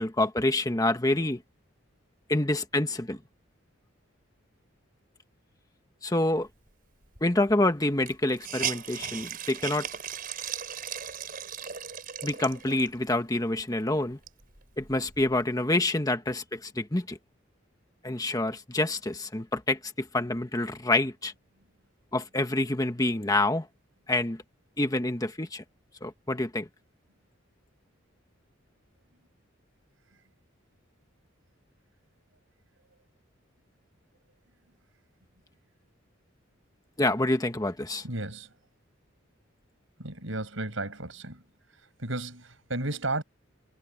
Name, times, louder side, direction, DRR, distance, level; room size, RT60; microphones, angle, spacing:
voice 1, 0.0-1.4 2.3-3.2 6.0-6.5 7.2-9.9 12.2-14.2 14.8-17.2 18.0-21.3 22.1-23.7 24.1-24.4 24.8-25.6 26.0-26.7 37.0-38.0, left 2 dB, 20° left, 1.4 m, -27 dB
Hiss, 7.2-7.3 7.5-7.6 8.0-13.0 13.6-13.7 14.1-15.4, right 8 dB, 45° right, 4.9 m, -37 dB
voice 2, 38.0-38.5 40.0-41.4 41.7-43.2, right 2 dB, 75° right, 6.3 m, -34 dB
head